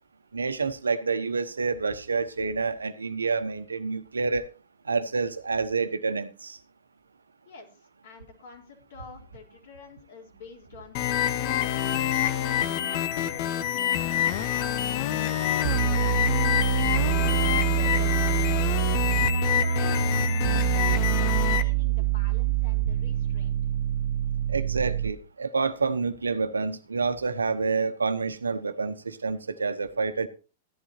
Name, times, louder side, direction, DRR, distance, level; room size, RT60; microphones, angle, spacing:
voice 1, 0.3-4.5 4.8-6.6 24.5-30.3, right 4 dB, 90° right, 1.0 m, -28 dB
voice 2, 8.0-11.3 12.0-15.4 15.7-16.2 16.9-18.7 19.3-23.6, left 4 dB, 65° left, 3.9 m, -47 dB
sound 1, 10.9-21.6, left 11 dB, 50° left, 1.0 m, -26 dB
sound 2, 15.6-25.2, right 10 dB, 70° right, 0.5 m, -25 dB
15.5 x 11.0 x 2.8 m
hypercardioid pair, 100°, 0 cm